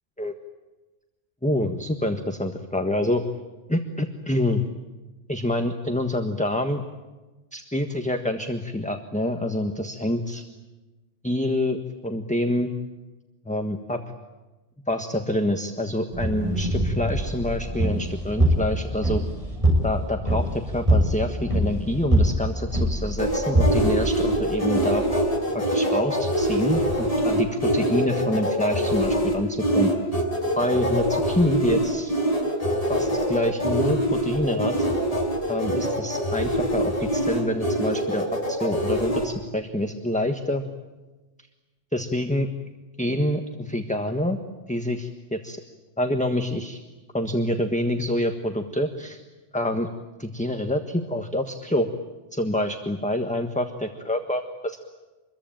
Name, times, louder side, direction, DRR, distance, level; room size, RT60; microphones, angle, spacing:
voice 1, 1.4-3.2 3.7-4.6 5.3-6.8 7.5-10.4 11.2-11.8 12.0-12.7 13.4-14.0 14.9-19.2 19.8-25.0 25.5-29.9 30.6-32.1 32.9-34.9 35.5-40.6 41.9-42.5 43.0-44.4 44.7-45.1 45.4-45.6 46.0-46.8 47.1-49.2 49.5-49.9 50.2-51.9 52.3-54.8, left 1 dB, 5° left, 5 dB, 1.4 m, -26 dB
sound 1, 16.1-24.8, right 1 dB, 25° right, 6.9 m, -24 dB
sound 2, 23.2-39.2, equal, 30° left, 5.3 m, -24 dB
26.5 x 22.0 x 9.0 m, 1.2 s
omnidirectional pair, 1.2 m